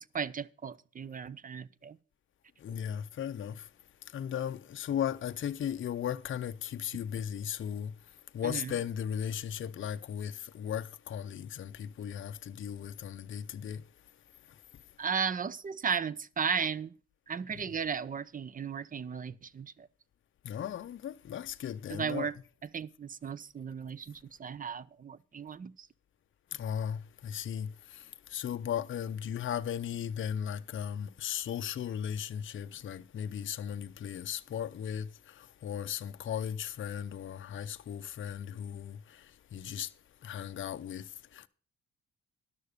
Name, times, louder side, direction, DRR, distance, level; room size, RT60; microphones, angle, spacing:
voice 1, 0.1-2.0 8.4-8.7 15.0-16.9 17.3-19.9 21.9-22.3 22.7-25.9, right 6 dB, 30° right, 0.5 m, -35 dB
voice 2, 2.6-3.6 4.1-7.9 8.3-13.8 17.5-17.6 20.4-22.3 26.5-27.7 28.3-39.2 39.5-39.9 40.2-41.1 41.3-41.5, left 9 dB, 40° left, 0.6 m, -36 dB
11.5 x 6.5 x 6.6 m
cardioid pair, 90°, 30 cm